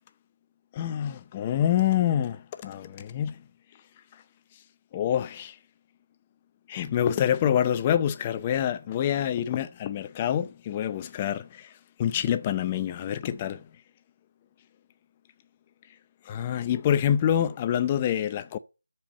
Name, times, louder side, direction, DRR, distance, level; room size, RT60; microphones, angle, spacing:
voice 1, 0.7-3.4 4.9-5.6 6.7-11.7 12.0-13.7 16.3-18.6, left 10 dB, 15° left, 0.5 m, -26 dB
13.0 x 4.5 x 8.7 m
figure-of-eight pair, 170°, 0 cm